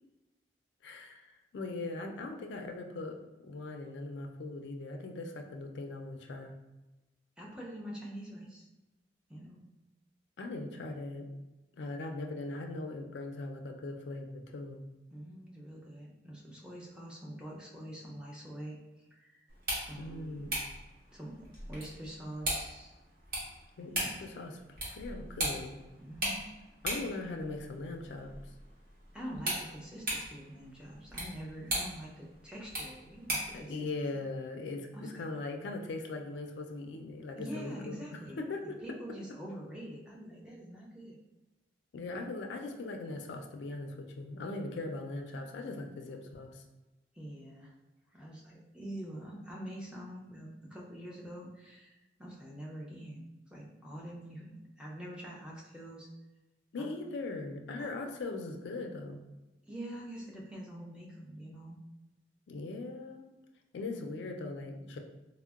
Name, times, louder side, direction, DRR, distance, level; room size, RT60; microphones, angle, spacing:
voice 1, 0.8-6.5 10.4-11.3 11.7-14.8 20.0-20.7 23.8-24.6 24.9-25.8 26.8-28.3 33.5-38.8 41.9-46.6 56.7-59.2 62.5-63.2 63.7-65.0, left 2 dB, 75° left, 4 dB, 0.4 m, -40 dB
voice 2, 7.4-8.7 9.3-9.6 15.1-19.4 19.9-20.5 21.1-22.9 23.8-24.1 26.0-26.5 29.1-33.9 34.9-35.3 37.4-41.2 47.1-47.7 48.1-53.2 53.5-56.1 56.8-56.9 57.8-57.9 59.7-61.8, right 1 dB, 5° right, -4 dB, 0.4 m, -45 dB
sound 1, 19.5-33.6, right 1 dB, 50° right, 0.9 m, -39 dB
3.6 x 2.0 x 2.3 m, 1.1 s
head